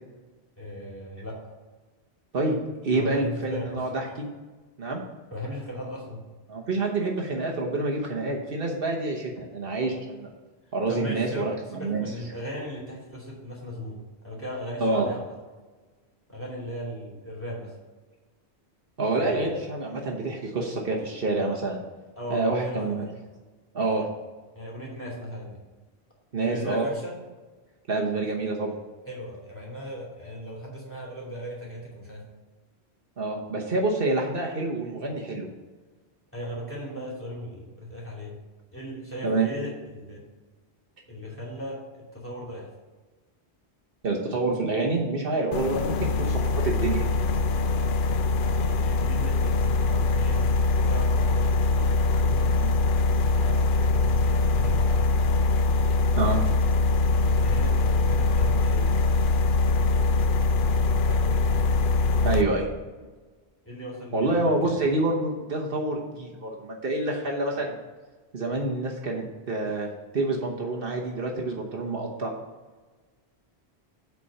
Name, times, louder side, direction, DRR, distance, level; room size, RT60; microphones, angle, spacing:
voice 1, 0.6-1.4 2.9-3.8 5.3-6.2 10.9-15.3 16.3-17.8 19.2-19.6 22.2-23.1 24.5-25.6 26.4-27.2 29.0-32.2 36.3-38.4 38.7-40.2 41.1-41.8 42.1-42.7 48.3-50.5 50.9-52.5 53.1-55.1 57.0-59.0 59.6-60.4 60.9-61.5 63.6-64.8, equal, 10° left, -4 dB, 2.7 m, -38 dB
voice 2, 2.8-4.1 4.8-5.0 6.5-10.3 10.7-12.0 14.8-15.1 19.0-21.8 22.3-23.1 23.7-24.1 26.3-26.9 27.9-28.7 33.2-35.5 39.2-39.5 44.0-47.1 52.6-52.7 56.2-56.4 62.2-62.7 64.1-67.8 68.3-72.3, right 2 dB, 60° right, 0 dB, 1.2 m, -27 dB
sound 1, 45.5-62.4, left 3 dB, 60° left, 0.7 m, -23 dB
8.2 x 4.2 x 6.9 m, 1.3 s
omnidirectional pair, 1.1 m